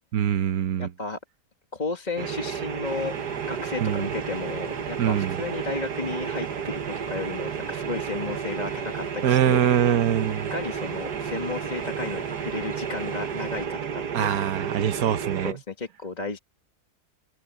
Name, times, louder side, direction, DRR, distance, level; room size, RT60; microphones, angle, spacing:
voice 1, 0.1-0.9 3.8-4.1 5.0-5.4 9.2-10.5 14.1-15.5, right 10 dB, 70° right, 1.3 m, -23 dB
voice 2, 0.8-1.2 1.7-3.2 3.5-6.8 7.1-9.6 10.5-14.3 15.4-16.4, left 3 dB, 25° left, 1.9 m, -33 dB
sound 1, 2.2-15.5, right 7 dB, 90° right, 1.9 m, -32 dB
sound 2, 2.8-13.7, right 1 dB, 20° right, 2.9 m, -45 dB
open air
omnidirectional pair, 1.7 m